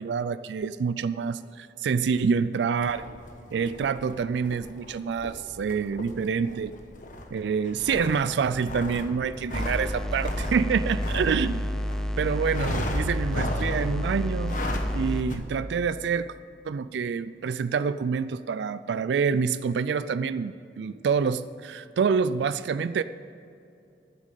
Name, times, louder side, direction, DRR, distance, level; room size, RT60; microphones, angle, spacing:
voice 1, 0.0-3.0 3.5-6.7 7.3-11.6 12.2-14.6 14.9-16.3 16.7-23.0, right 6 dB, 75° right, 14 dB, 0.3 m, -27 dB
sound 1, 2.8-12.0 12.5-14.0 14.4-15.0 15.3-15.4, left 1 dB, 45° left, 1.2 m, -36 dB
sound 2, 9.5-15.3, equal, 5° left, 0.5 m, -30 dB
9.6 x 7.6 x 8.4 m, 2.6 s
head